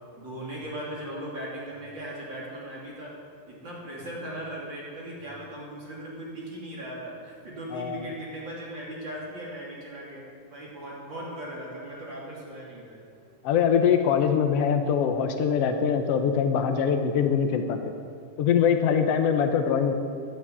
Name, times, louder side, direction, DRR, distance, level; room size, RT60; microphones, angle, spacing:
voice 1, 0.2-3.1 3.5-13.0, right 1 dB, 35° right, -5 dB, 3.3 m, -38 dB
voice 2, 7.7-8.1 13.4-17.8 18.4-19.9, left 7 dB, 80° left, 6 dB, 1.3 m, -23 dB
11.5 x 10.5 x 8.3 m, 2.2 s
omnidirectional pair, 4.0 m